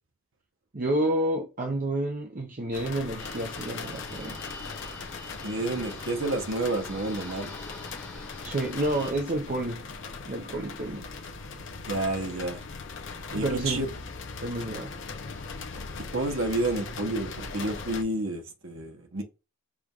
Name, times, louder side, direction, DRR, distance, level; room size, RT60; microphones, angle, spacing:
voice 1, 0.7-4.4 8.4-9.8 10.2-11.1 13.3-13.9 14.4-15.0, right 1 dB, 35° right, 0.6 m, -29 dB
sound 1, 2.7-18.0, left 4 dB, 55° left, 0.7 m, -40 dB
sound 2, 3.2-9.1, left 2 dB, 10° left, 1.0 m, -44 dB
voice 2, 5.4-7.5 11.9-12.6 13.3-13.9 16.1-19.2, right 2 dB, 65° right, 1.0 m, -30 dB
4.9 x 3.4 x 2.4 m
head